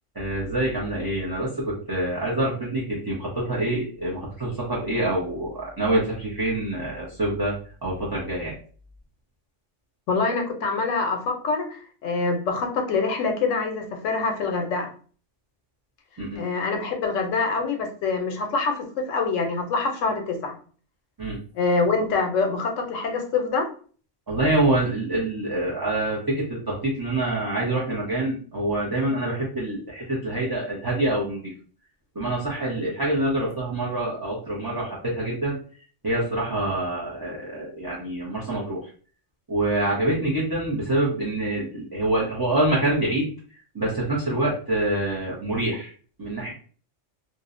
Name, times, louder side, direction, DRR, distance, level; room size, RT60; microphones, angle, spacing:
voice 1, 0.2-7.5 7.8-8.5 16.2-16.4 21.2-21.4 24.3-31.4 32.2-35.6 36.0-38.8 39.5-43.3 43.7-45.9 46.2-46.5, right 1 dB, 35° right, -5 dB, 0.3 m, -26 dB
voice 2, 10.1-14.9 16.4-20.6 21.5-23.7, left 4 dB, 85° left, 4 dB, 0.9 m, -25 dB
2.5 x 2.0 x 2.4 m, 0.43 s
omnidirectional pair, 1.3 m